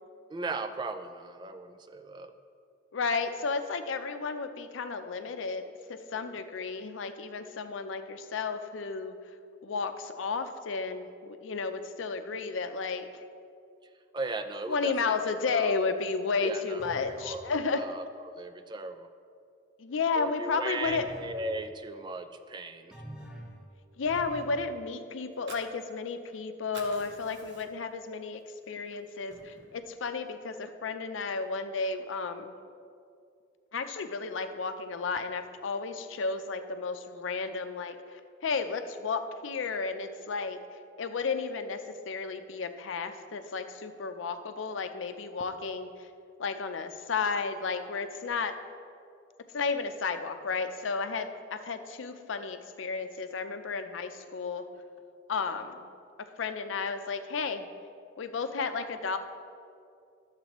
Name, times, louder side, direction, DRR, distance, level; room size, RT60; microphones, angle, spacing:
voice 1, 0.3-2.3 14.1-15.2 15.4-15.8 16.4-19.1 20.2-22.9, right 3 dB, 25° right, 9 dB, 0.3 m, -37 dB
voice 2, 2.9-9.2 9.6-13.2 14.7-17.8 19.8-21.1 24.0-28.4 28.7-32.5 33.7-38.0 38.4-40.6 41.0-45.9 46.4-48.5 49.5-54.7 55.3-55.9 56.4-57.7 58.2-59.2, left 4 dB, 90° left, 8 dB, 0.5 m, -33 dB
sound 1, 16.8-17.3 20.8-21.4 22.9-23.6 24.1-24.6, equal, 5° right, 1.1 m, -45 dB
Fire, 25.2-26.4 26.6-28.0 28.4-28.5 28.9-29.9, right 2 dB, 65° right, 1.0 m, -49 dB
11.5 x 7.3 x 3.0 m, 2.4 s
head